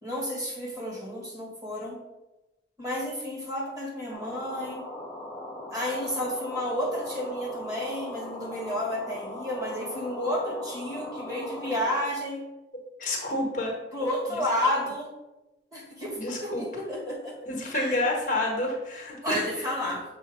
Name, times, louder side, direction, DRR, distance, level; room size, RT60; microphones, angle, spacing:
voice 1, 0.0-2.0 2.8-4.9 5.7-12.4 13.9-15.1 15.7-17.4 17.7-18.0 19.2-20.0, left 1 dB, 20° right, -3 dB, 1.8 m, -31 dB
sound 1, 4.1-12.0, left 1 dB, 10° left, 0.9 m, -40 dB
voice 2, 13.0-13.7 16.2-16.6 17.5-19.5, left 2 dB, 45° left, 0 dB, 1.3 m, -29 dB
6.8 x 3.0 x 5.0 m, 1.0 s
head